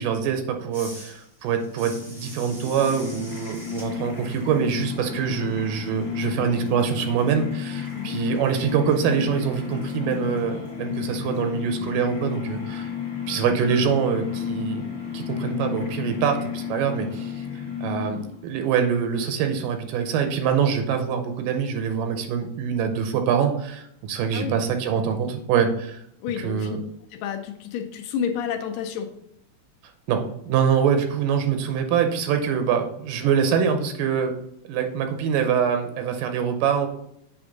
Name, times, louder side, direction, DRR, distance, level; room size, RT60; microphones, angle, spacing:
voice 1, 0.0-12.9 13.3-14.9 15.1-17.3 17.8-26.0 26.4-26.8 30.1-34.3 34.7-36.9, right 7 dB, 85° right, 6 dB, 2.3 m, -24 dB
sound 1, 0.7-6.2 6.5-11.4, equal, ahead, 0.7 m, -47 dB
sound 2, 1.8-18.5, left 8 dB, 45° left, 2.0 m, -32 dB
voice 2, 26.2-26.8 27.1-29.1, left 8 dB, 90° left, 5 dB, 2.4 m, -30 dB
8.1 x 3.5 x 3.9 m, 0.75 s
omnidirectional pair, 3.7 m